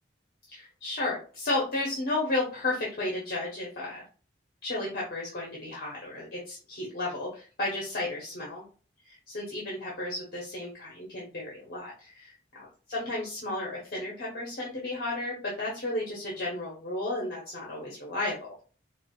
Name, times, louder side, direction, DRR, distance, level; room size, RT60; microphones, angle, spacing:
voice 1, 0.5-4.0 4.6-8.6 9.0-12.6 12.9-18.5, left 2 dB, 55° left, -4 dB, 0.9 m, -33 dB
4.5 x 2.2 x 2.3 m, 0.37 s
head